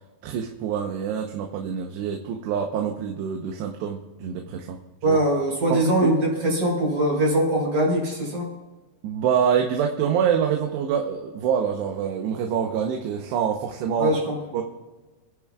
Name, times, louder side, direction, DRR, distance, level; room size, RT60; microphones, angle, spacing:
voice 1, 0.2-4.8 5.1-5.2 5.7-5.8 9.0-14.2 14.5-14.6, right 8 dB, 90° right, 2 dB, 3.1 m, -26 dB
voice 2, 5.0-8.5 14.0-14.4, right 1 dB, 45° right, -2 dB, 5.9 m, -22 dB
28.5 x 10.5 x 2.4 m, 1.2 s
omnidirectional pair, 4.7 m